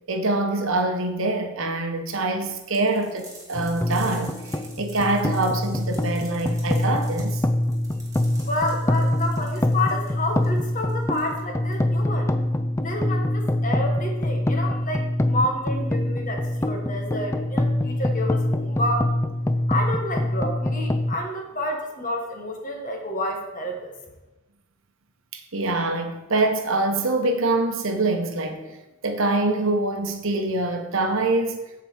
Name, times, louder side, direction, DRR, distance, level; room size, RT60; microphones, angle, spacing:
voice 1, 0.1-7.4 25.3-28.8 29.0-31.6, right 2 dB, 60° right, 1.0 m, -25 dB
sound 1, 2.7-12.1, right 2 dB, 15° right, 1.6 m, -48 dB
sound 2, 3.5-21.2, left 1 dB, 10° left, 0.3 m, -25 dB
voice 2, 8.5-12.3 12.8-19.1 19.7-23.9, left 1 dB, 35° left, 1.5 m, -29 dB
8.0 x 4.7 x 7.2 m
head